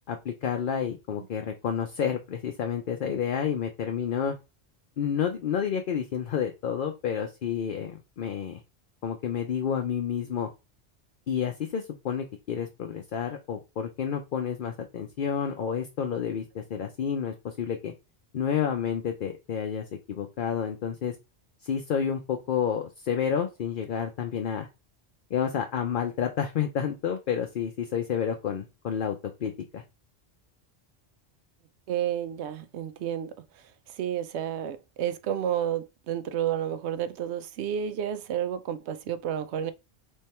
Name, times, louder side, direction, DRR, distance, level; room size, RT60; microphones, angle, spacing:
voice 1, 0.1-4.3 5.0-8.6 9.0-10.5 11.3-17.9 18.3-21.1 21.6-24.7 25.3-29.8, left 8 dB, 55° left, 0.7 m, -30 dB
voice 2, 31.9-39.7, right 10 dB, 85° right, 0.9 m, -31 dB
3.5 x 3.2 x 4.3 m
omnidirectional pair, 1.1 m